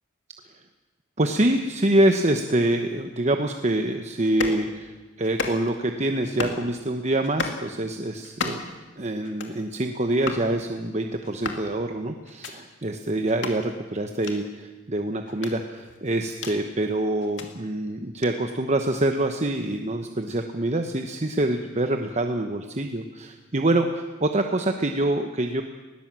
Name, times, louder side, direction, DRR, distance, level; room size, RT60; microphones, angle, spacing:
voice 1, 1.2-8.6 9.0-25.6, right 1 dB, 35° right, 5 dB, 1.1 m, -25 dB
sound 1, 4.2-4.6 5.2-5.8 6.2-6.6 7.2-7.6 8.2-8.8 9.2-9.6 10.2-10.5 11.2-11.7 12.2-12.5 13.3-13.6 14.2-14.4 15.3-16.6 17.2-17.5 18.2-18.3, left 4 dB, 65° left, 2.5 m, -33 dB
20.5 x 17.5 x 7.6 m, 1.2 s
head